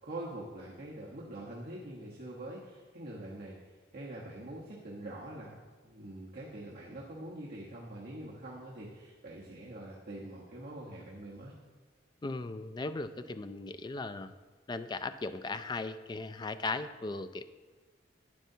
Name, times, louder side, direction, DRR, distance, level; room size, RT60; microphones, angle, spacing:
voice 1, 0.0-5.5 5.8-11.5, right 1 dB, 55° right, -5 dB, 1.1 m, -44 dB
voice 2, 12.2-14.3 14.7-17.4, left 3 dB, 20° left, 11 dB, 0.3 m, -37 dB
11.5 x 9.1 x 2.7 m, 1.4 s
head